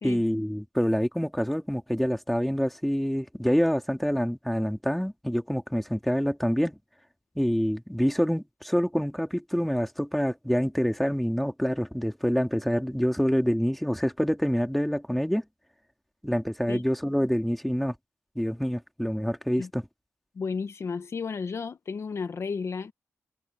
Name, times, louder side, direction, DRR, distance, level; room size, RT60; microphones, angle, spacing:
voice 1, 0.0-6.8 7.4-15.4 16.2-17.9 18.4-19.8, equal, ahead, 2.4 m, -26 dB
voice 2, 20.3-22.9, left 5 dB, 55° left, 1.2 m, -33 dB
wide cardioid pair, 115°, 6 cm